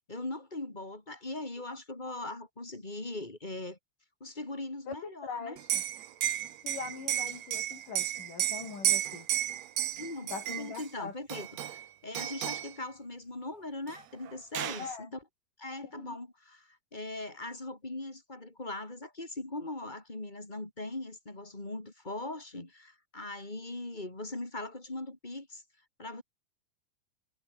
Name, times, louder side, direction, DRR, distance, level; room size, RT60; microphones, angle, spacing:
voice 1, 0.1-3.8 4.2-5.6 10.0-10.3 10.6-15.2 15.6-25.6 26.0-26.2, left 2 dB, 15° left, 3.5 m, -40 dB
voice 2, 4.9-5.8 6.6-9.3 10.3-11.1 14.8-15.1 15.9-16.2, left 5 dB, 75° left, 6.5 m, -42 dB
Liquid, 5.6-10.9 11.3-11.9 12.1-12.7 13.9-14.0 14.3-14.9, right 11 dB, 60° right, 2.3 m, -33 dB
omnidirectional pair, 3.8 m